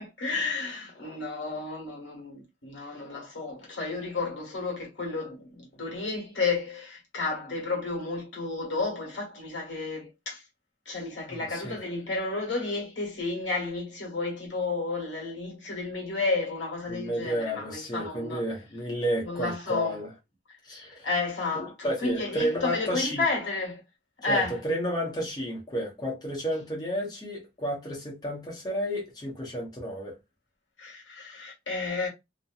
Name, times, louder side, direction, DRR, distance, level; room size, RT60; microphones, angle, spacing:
voice 1, 0.0-10.4 10.9-18.4 19.2-20.0 20.9-23.8 24.2-24.6 30.8-32.1, left 3 dB, 80° left, 1.4 m, -32 dB
voice 2, 11.3-11.8 16.9-20.1 20.7-21.1 21.5-23.2 24.2-30.2, equal, 20° left, 0.8 m, -31 dB
2.8 x 2.2 x 2.3 m
head